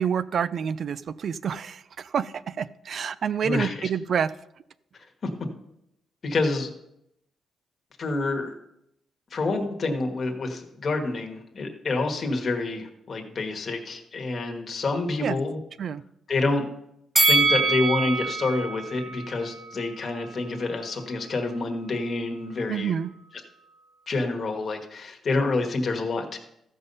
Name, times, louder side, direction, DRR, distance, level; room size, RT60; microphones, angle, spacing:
voice 1, 0.0-4.3 15.2-15.4 15.8-16.0 22.7-23.1, right 7 dB, 50° right, 16 dB, 0.4 m, -28 dB
voice 2, 3.4-3.9 6.2-6.7 8.0-8.5 9.3-15.6 16.3-16.7 17.3-22.9 24.1-26.4, left 3 dB, 35° left, 3 dB, 1.4 m, -27 dB
Bell, 17.2-20.3 20.7-20.8, right 2 dB, 10° right, 1.3 m, -25 dB
14.5 x 5.5 x 5.4 m, 0.80 s
cardioid pair, 145°, 0 cm